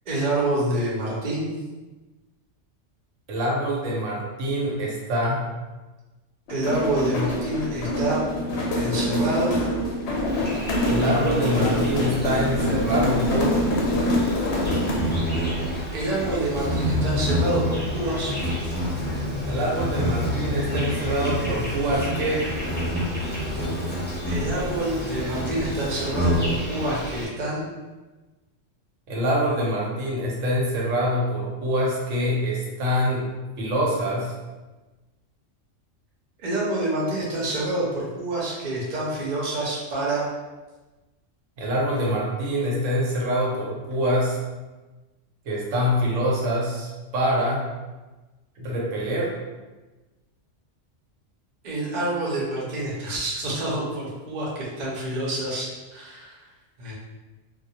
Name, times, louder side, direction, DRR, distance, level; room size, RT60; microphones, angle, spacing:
voice 1, 0.1-1.6 6.5-8.2 8.8-9.5 15.9-18.3 24.2-27.6 36.4-40.2 51.6-56.4 56.8-56.9, right 1 dB, 45° right, -5 dB, 0.7 m, -27 dB
voice 2, 3.3-5.4 10.9-13.6 19.4-22.5 29.1-33.3 33.6-34.3 41.6-44.4 45.4-47.6 48.6-49.3, equal, 90° right, -3 dB, 1.0 m, -25 dB
sound 1, 6.5-15.2, left 1 dB, 65° left, 0.8 m, -25 dB
Insect, 10.3-27.3, equal, 15° left, 0.4 m, -28 dB
2.3 x 2.0 x 2.7 m, 1.2 s
omnidirectional pair, 1.3 m